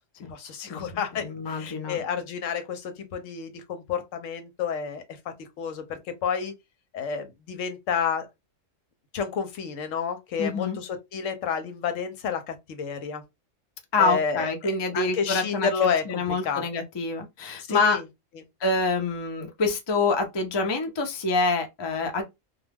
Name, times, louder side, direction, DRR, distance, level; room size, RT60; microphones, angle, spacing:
voice 1, 0.3-6.5 6.9-8.3 9.1-13.2 14.0-16.6 17.7-18.0, left 6 dB, 80° left, 1.0 m, -30 dB
voice 2, 1.1-2.0 10.4-10.8 13.9-15.7 16.1-18.0 18.6-22.2, left 3 dB, 40° left, 0.4 m, -26 dB
2.3 x 2.2 x 3.3 m
omnidirectional pair, 1.3 m